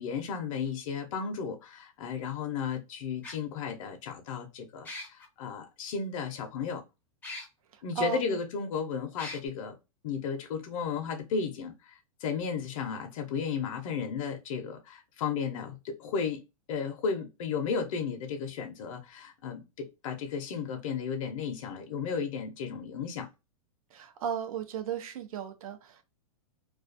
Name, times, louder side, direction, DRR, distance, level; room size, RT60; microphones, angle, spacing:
voice 1, 0.0-6.8 7.8-9.7 10.0-16.4 16.7-23.3, left 6 dB, 65° left, 0.6 m, -34 dB
sound 1, 0.7-0.8 2.2-2.3 3.2-3.4 4.8-5.3 7.2-7.5 8.1-8.2 9.2-9.4, left 2 dB, 10° left, 0.5 m, -40 dB
voice 2, 7.7-8.2 23.9-26.0, right 7 dB, 80° right, 0.6 m, -35 dB
2.3 x 2.2 x 2.4 m
supercardioid pair, 145°, 18 cm